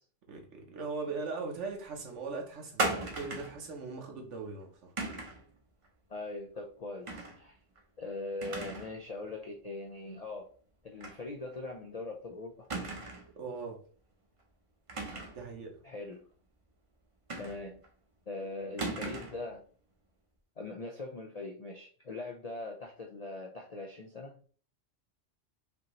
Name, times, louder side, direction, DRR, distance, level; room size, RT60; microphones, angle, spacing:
voice 1, 0.3-4.9 13.4-13.8 15.3-15.8, right 4 dB, 65° right, 1.2 m, -40 dB
sound 1, 2.8-3.6 5.0-5.4 7.1-7.4 7.8-7.9 8.4-8.9 9.3-9.4 11.0-11.2 11.5-11.6 12.7-13.3 14.9-15.4 17.3-17.9 18.8-19.4, right 2 dB, 30° right, 0.7 m, -36 dB
voice 2, 6.1-7.5 8.0-10.5 10.8-12.7 15.8-16.2 17.4-17.8 18.3-19.6 20.6-24.4, left 2 dB, 55° left, 0.4 m, -41 dB
5.2 x 2.9 x 3.0 m
omnidirectional pair, 1.3 m